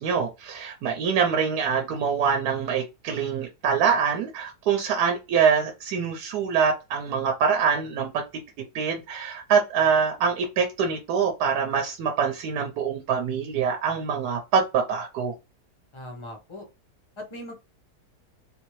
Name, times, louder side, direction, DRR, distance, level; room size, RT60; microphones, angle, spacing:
voice 1, 0.0-8.1 8.7-15.3, right 6 dB, 80° right, 3 dB, 1.1 m, -24 dB
voice 2, 15.9-16.7 17.2-17.5, left 1 dB, 30° left, 3 dB, 0.6 m, -39 dB
3.6 x 2.7 x 3.0 m, 0.27 s
omnidirectional pair, 1.7 m